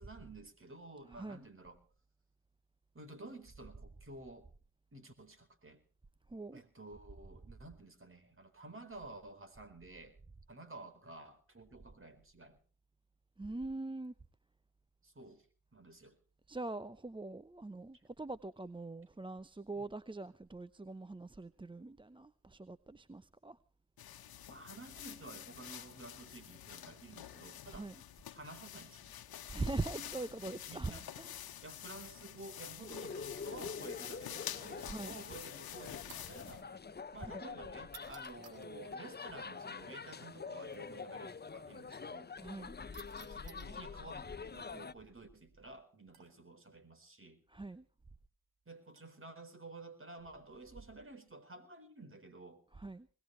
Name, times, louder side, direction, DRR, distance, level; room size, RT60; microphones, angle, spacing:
voice 1, 0.0-1.8 2.9-4.5 4.9-5.8 6.5-10.2 10.5-12.6 15.0-15.5 15.7-16.2 19.8-19.9 24.5-27.9 28.3-29.1 30.0-30.2 30.7-31.1 31.6-36.7 37.1-42.3 43.2-47.4 48.7-52.6, right 2 dB, 35° right, 8 dB, 4.3 m, -52 dB
voice 2, 1.1-1.5 6.3-6.6 13.4-14.1 16.5-23.6 27.7-28.0 29.5-31.4 34.8-35.2 37.2-37.5 42.4-42.8 47.5-47.9 52.7-53.1, right 2 dB, 15° right, 15 dB, 0.8 m, -43 dB
sound 1, 24.0-36.6, left 11 dB, 80° left, 1.3 m, -48 dB
sound 2, 32.8-44.9, left 5 dB, 25° left, 0.8 m, -46 dB
sound 3, 36.1-36.5 37.8-38.7 40.6-40.8 42.9-43.7 46.1-46.5 48.9-49.2 50.1-50.4, right 6 dB, 85° right, 2.8 m, -57 dB
21.0 x 18.0 x 3.2 m, 0.39 s
supercardioid pair, 50°, 36 cm